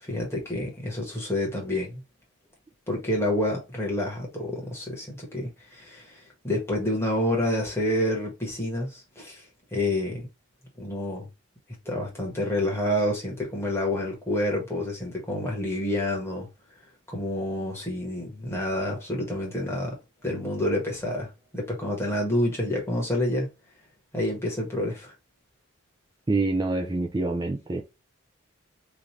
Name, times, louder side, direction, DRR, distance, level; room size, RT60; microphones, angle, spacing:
voice 1, 0.0-2.0 2.9-9.4 9.7-10.3 10.8-11.3 11.8-16.5 17.1-20.0 20.2-23.5 24.1-25.1, left 1 dB, 10° left, 1.3 m, -28 dB
voice 2, 26.3-27.8, right 2 dB, 20° right, 0.4 m, -26 dB
3.2 x 2.5 x 4.1 m
head